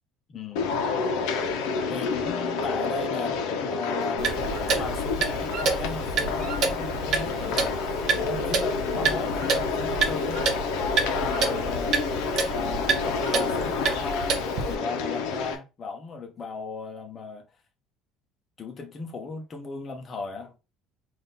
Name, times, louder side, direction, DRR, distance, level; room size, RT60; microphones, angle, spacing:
voice 1, 0.3-0.7 1.9-10.5 11.1-12.0 12.5-17.5 18.6-20.6, left 4 dB, 25° left, 0.9 m, -37 dB
sound 1, 0.6-15.6, left 4 dB, 80° left, 0.9 m, -29 dB
Clock, 4.2-14.7, right 4 dB, 45° right, 0.9 m, -29 dB
3.7 x 2.7 x 4.1 m
cardioid pair, 160°, 0 cm